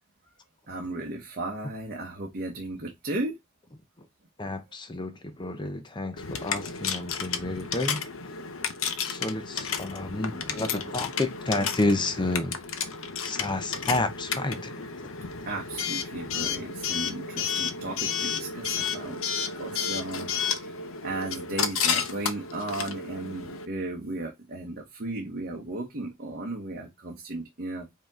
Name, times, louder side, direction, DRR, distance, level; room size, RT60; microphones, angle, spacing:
voice 1, 0.7-3.4 15.5-19.2 19.5-27.9, right 2 dB, 45° right, 1.0 m, -35 dB
voice 2, 4.4-8.1 9.0-12.6 13.2-14.8 15.0-15.1, left 2 dB, 20° left, 0.6 m, -30 dB
Coin (dropping) / Alarm, 6.2-23.7, left 6 dB, 70° left, 0.7 m, -32 dB
5.1 x 2.9 x 3.6 m
head